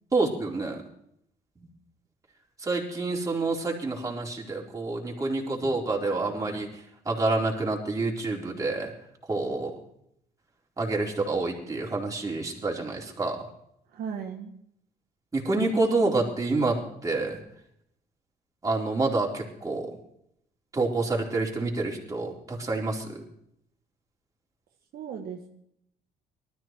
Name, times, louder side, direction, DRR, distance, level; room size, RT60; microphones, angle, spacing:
voice 1, 0.1-0.8 2.6-6.7 7.1-8.9 9.3-9.7 10.8-13.4 15.3-17.4 18.6-20.0 20.7-23.2, right 3 dB, 20° right, -2 dB, 4.0 m, -28 dB
voice 2, 13.9-14.5 24.9-25.5, right 7 dB, 60° right, 2 dB, 1.6 m, -36 dB
19.0 x 13.5 x 4.6 m, 0.73 s
cardioid pair, 110°, 17 cm